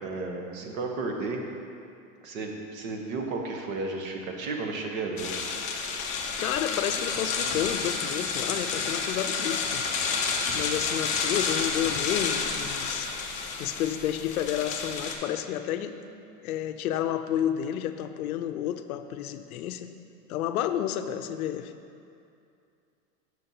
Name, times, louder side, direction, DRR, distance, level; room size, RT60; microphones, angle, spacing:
voice 1, 0.0-1.4 2.2-5.3, right 3 dB, 70° right, 2 dB, 1.1 m, -33 dB
sound 1, 5.2-15.2, left 5 dB, 20° left, 0.4 m, -30 dB
voice 2, 6.4-9.8 10.5-13.1 13.6-16.0 16.4-19.9 20.3-21.7, left 10 dB, 90° left, 9 dB, 0.5 m, -30 dB
8.7 x 6.3 x 2.7 m, 2.5 s
supercardioid pair, 140°, 42 cm